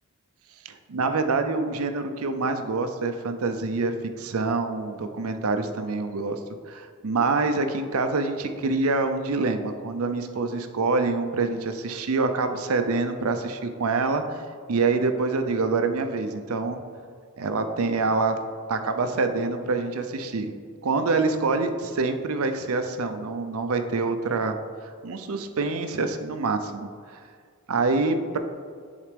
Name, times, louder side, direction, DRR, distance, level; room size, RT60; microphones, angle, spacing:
voice 1, 0.6-6.4 6.7-14.4 14.7-16.8 17.4-18.3 18.7-20.5 20.8-24.6 25.0-26.9 27.7-28.4, right 3 dB, 85° right, 7 dB, 0.6 m, -26 dB
10.5 x 4.1 x 3.4 m, 2.1 s
head